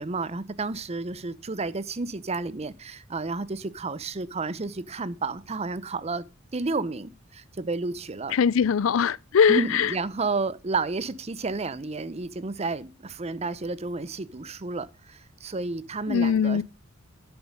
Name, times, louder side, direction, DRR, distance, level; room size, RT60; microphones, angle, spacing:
voice 1, 0.0-6.2 6.5-8.4 9.5-16.6, right 3 dB, 30° right, 0.6 m, -31 dB
voice 2, 8.4-9.6 16.1-16.6, left 6 dB, 75° left, 0.4 m, -21 dB
10.5 x 7.1 x 5.2 m
head